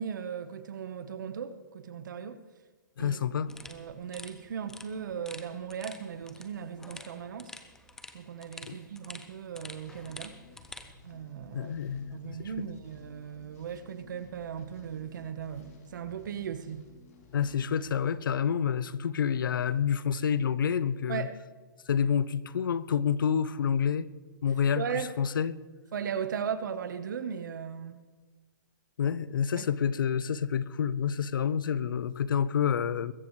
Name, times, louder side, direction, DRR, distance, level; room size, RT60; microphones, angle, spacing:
voice 1, 0.0-2.4 3.0-3.2 3.6-7.5 8.1-10.4 11.0-11.7 12.1-16.8 21.1-21.3 24.7-25.1 25.9-28.0 29.6-29.7, right 7 dB, 65° right, 11 dB, 1.2 m, -37 dB
voice 2, 3.0-3.5 8.7-8.8 11.5-12.5 17.3-21.3 21.9-24.1 24.4-25.6 29.0-33.1, left 7 dB, 80° left, 17 dB, 0.7 m, -28 dB
sound 1, 3.5-10.9, left 3 dB, 5° left, 0.5 m, -48 dB
sound 2, 9.8-18.7, left 3 dB, 50° left, 2.9 m, -56 dB
21.5 x 15.0 x 3.2 m, 1.4 s
hypercardioid pair, 160°, 11 cm